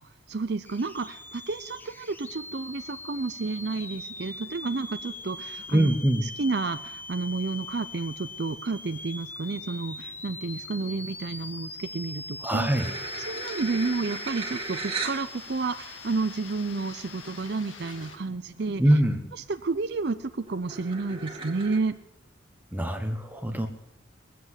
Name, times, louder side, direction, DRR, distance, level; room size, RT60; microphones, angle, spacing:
voice 1, 0.3-6.0 6.2-12.7 13.3-18.8 19.5-22.0, right 3 dB, 55° right, 10 dB, 0.6 m, -31 dB
sound 1, 0.7-17.4, left 2 dB, 10° left, 0.7 m, -42 dB
voice 2, 5.7-6.2 12.4-12.9 18.8-19.2 22.7-23.7, right 1 dB, 10° right, 5 dB, 1.0 m, -23 dB
sound 2, 12.5-18.2, left 5 dB, 90° left, 2.3 m, -46 dB
sound 3, 12.7-15.2 15.9-16.0 17.4-17.5 17.8-18.2 18.6-19.1 19.5-21.8, right 4 dB, 25° right, 2.0 m, -37 dB
21.5 x 7.7 x 8.1 m, 0.86 s
head